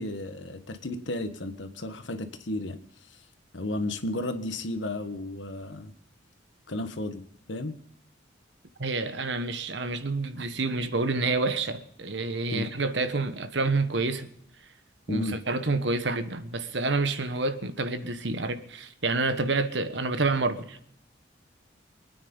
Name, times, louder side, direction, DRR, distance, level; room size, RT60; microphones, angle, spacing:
voice 1, 0.0-2.8 3.5-5.9 6.7-7.8 12.5-12.7 15.1-15.4, left 1 dB, 80° left, 9 dB, 1.5 m, -33 dB
voice 2, 8.8-14.3 15.1-20.8, right 3 dB, 70° right, 10 dB, 1.3 m, -28 dB
24.0 x 9.5 x 5.5 m, 0.71 s
head